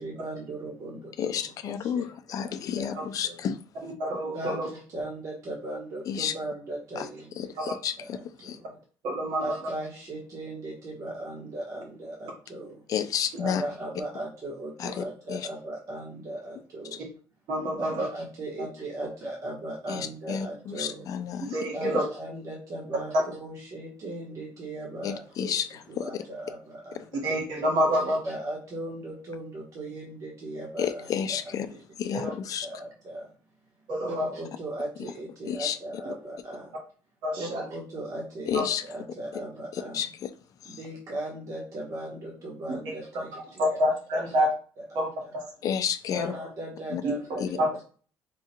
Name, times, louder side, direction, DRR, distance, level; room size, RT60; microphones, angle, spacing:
voice 1, 0.0-3.4 4.3-8.7 9.4-12.8 13.4-17.0 17.8-21.1 21.7-25.6 25.9-27.1 27.9-32.3 32.6-33.3 34.0-36.7 37.4-40.1 40.6-43.8 44.8-45.0 46.1-47.6, right 1 dB, 40° right, 1.3 m, -38 dB
voice 2, 1.2-3.6 6.1-6.3 7.0-7.1 7.4-8.2 8.4-8.6 12.9-13.6 14.8-15.0 15.3-15.5 19.9-20.0 20.3-21.6 25.0-25.7 26.0-26.1 30.8-31.7 32.0-32.7 35.5-35.8 38.5-38.8 39.9-40.3 45.6-46.3 46.9-47.0 47.4-47.5, left 8 dB, 45° left, 0.4 m, -30 dB
voice 3, 4.0-4.7 7.6-7.7 9.0-9.6 17.5-18.1 21.4-22.0 27.2-28.2 32.1-32.3 33.9-34.3 37.2-37.6 38.5-38.6 43.6-44.5 45.0-45.5 47.0-47.1 47.6-47.7, equal, 70° right, 1.8 m, -27 dB
3.7 x 2.4 x 4.3 m
cardioid pair, 145°, 8 cm